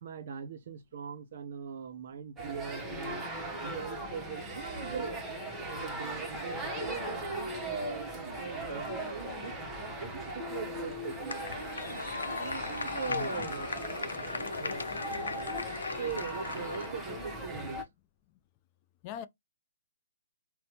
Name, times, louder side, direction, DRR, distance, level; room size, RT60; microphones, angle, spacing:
voice 1, 0.0-3.3 3.6-5.2 5.6-11.4 12.4-13.8 14.6-14.9 16.0-17.8, right 7 dB, 55° right, 0.6 m, -41 dB
sound 1, 2.4-17.8, right 1 dB, 10° right, 0.8 m, -39 dB
sound 2, 11.3-16.9, left 4 dB, 90° left, 0.5 m, -37 dB
voice 2, 13.1-13.5 19.0-19.3, left 10 dB, 30° left, 0.3 m, -40 dB
4.1 x 2.0 x 2.8 m
hypercardioid pair, 140°, 0 cm